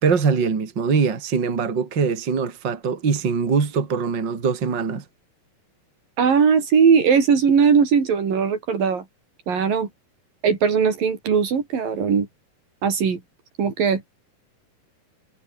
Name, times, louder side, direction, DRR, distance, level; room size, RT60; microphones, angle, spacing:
voice 1, 0.0-5.0, right 5 dB, 35° right, 3.3 m, -22 dB
voice 2, 6.2-9.1 9.5-9.9 10.4-12.3 12.8-13.2 13.6-14.1, right 6 dB, 75° right, 5.6 m, -19 dB
omnidirectional pair, 4.0 m